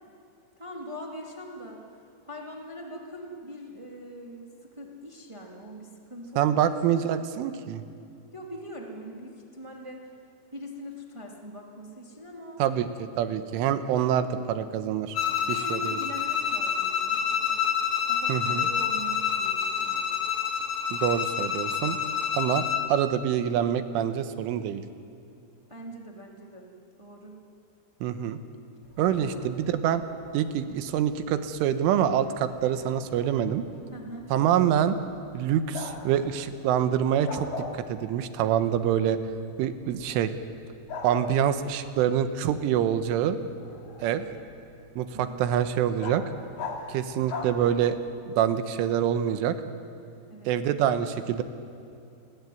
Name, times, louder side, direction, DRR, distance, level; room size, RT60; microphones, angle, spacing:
voice 1, 0.6-1.8 2.2-7.0 8.3-10.1 10.5-12.6 15.5-17.6 18.1-20.1 25.7-26.7 27.0-27.4 29.1-29.4 33.9-34.3 44.0-44.3 45.1-45.4 50.3-50.5, equal, 20° right, -1 dB, 0.8 m, -42 dB
voice 2, 6.4-7.8 12.6-15.2 15.5-15.9 18.3-18.7 20.9-22.0 22.3-24.8 28.0-28.4 29.0-30.0 30.3-33.6 34.3-35.0 35.3-37.5 37.9-39.2 39.6-40.3 41.0-43.4 44.0-44.2 45.0-46.2 46.9-48.0 48.3-49.6 50.5-51.4, right 9 dB, 80° right, 9 dB, 3.5 m, -26 dB
Bowed string instrument, 15.1-22.9, left 7 dB, 70° left, 1.3 m, -28 dB
Bark, 28.8-48.2, left 3 dB, 45° left, 4.1 m, -43 dB
30.0 x 20.0 x 9.4 m, 2.5 s
omnidirectional pair, 5.8 m